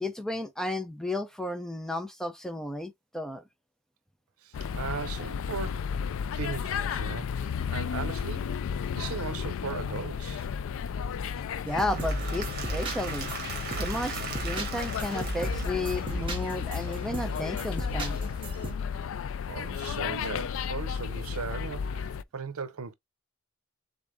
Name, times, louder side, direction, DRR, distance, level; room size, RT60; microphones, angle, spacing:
voice 1, 0.0-3.4 11.6-13.3 13.8-18.2, left 1 dB, ahead, 0.4 m, -33 dB
voice 2, 4.4-5.9 6.3-8.6 8.9-10.5 19.4-22.9, right 5 dB, 75° right, 0.6 m, -38 dB
sound 1, 4.5-22.2, left 7 dB, 60° left, 0.3 m, -33 dB
Applause / Crowd, 11.6-16.6, right 4 dB, 45° right, 1.4 m, -39 dB
sound 2, 11.7-18.7, right 2 dB, 25° right, 1.4 m, -37 dB
3.7 x 3.6 x 3.5 m
head